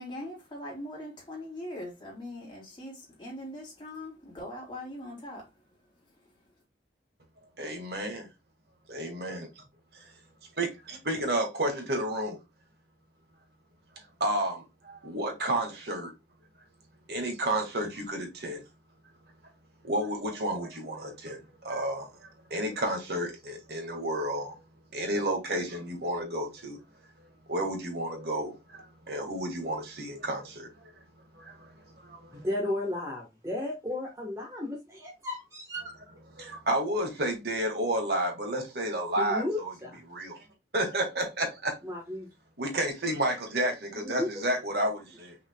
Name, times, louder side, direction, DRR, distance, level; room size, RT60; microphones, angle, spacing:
voice 1, 0.0-5.6, left 1 dB, 25° left, 2.9 m, -41 dB
voice 2, 7.6-8.3 8.9-9.6 10.6-12.4 14.2-16.1 17.1-18.6 19.8-22.1 22.5-24.6 24.9-26.8 27.5-30.7 31.4-31.7 32.0-32.5 36.4-39.7 40.1-40.4 40.7-41.7 42.6-45.4, right 1 dB, 65° right, 1.8 m, -31 dB
voice 3, 32.3-35.9 39.2-40.0 41.8-42.3 44.0-44.3, left 1 dB, 15° right, 1.2 m, -34 dB
5.8 x 4.0 x 2.2 m
head